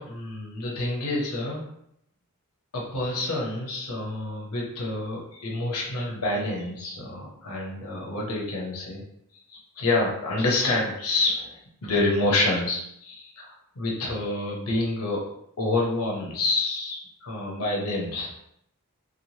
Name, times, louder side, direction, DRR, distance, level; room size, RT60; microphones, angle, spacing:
voice 1, 0.0-1.6 2.7-9.0 9.5-15.3 15.6-18.6, left 2 dB, 80° left, -2 dB, 0.8 m, -28 dB
3.0 x 2.1 x 2.7 m, 0.74 s
head